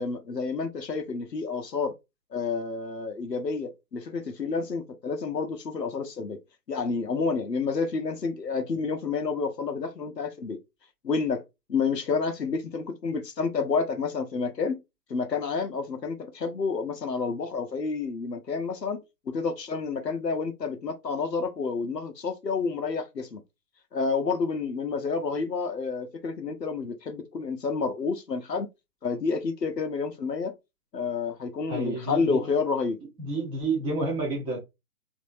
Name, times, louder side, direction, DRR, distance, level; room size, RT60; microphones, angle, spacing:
voice 1, 0.0-1.9 2.3-6.4 6.7-10.6 11.0-11.4 11.7-14.8 15.1-19.0 19.3-23.4 23.9-28.7 29.0-30.5 30.9-33.0, left 4 dB, 90° left, 0.8 m, -29 dB
voice 2, 31.7-32.4 33.2-34.6, right 3 dB, 10° right, 1.0 m, -29 dB
3.5 x 2.7 x 2.6 m
figure-of-eight pair, 130°, 48 cm